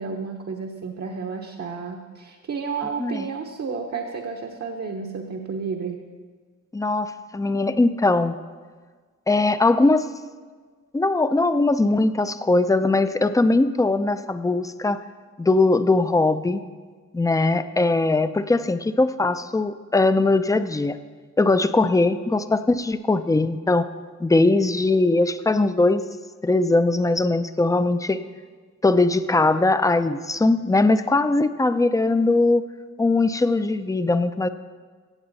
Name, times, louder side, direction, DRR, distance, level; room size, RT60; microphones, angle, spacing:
voice 1, 0.0-6.0, right 5 dB, 60° right, 2 dB, 1.0 m, -31 dB
voice 2, 6.7-8.4 9.3-10.1 10.9-15.0 15.4-16.6 17.1-21.0 21.4-23.9 24.2-26.0 26.4-28.2 28.8-32.6 33.0-34.5, left 2 dB, 10° left, 11 dB, 0.4 m, -20 dB
16.0 x 7.9 x 4.1 m, 1.5 s
cardioid pair, 95°, 29 cm